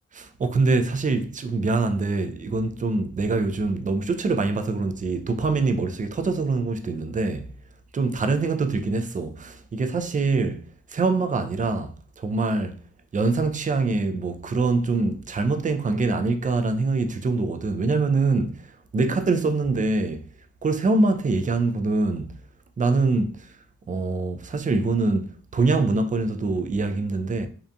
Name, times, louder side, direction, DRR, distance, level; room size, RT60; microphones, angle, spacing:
voice 1, 0.2-7.5 7.9-10.6 10.9-12.8 13.1-20.2 20.6-22.3 22.8-23.6 23.9-27.5, right 3 dB, 25° right, 0.3 m, -24 dB
2.7 x 2.4 x 2.2 m
cardioid pair, 50°, 31 cm